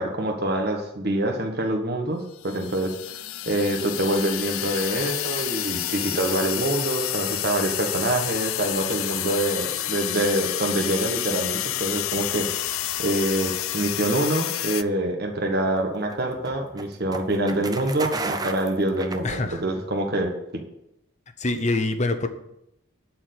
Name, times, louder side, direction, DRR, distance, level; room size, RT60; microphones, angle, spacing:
voice 1, 0.0-20.6, right 1 dB, 50° right, 2 dB, 1.4 m, -26 dB
sound 1, 2.4-14.8, left 13 dB, 85° left, 0.5 m, -29 dB
sound 2, 15.4-19.8, right 3 dB, 20° right, 0.6 m, -34 dB
voice 2, 19.2-19.6 21.4-22.3, left 2 dB, 35° left, 8 dB, 0.9 m, -25 dB
12.0 x 4.6 x 8.4 m, 0.82 s
head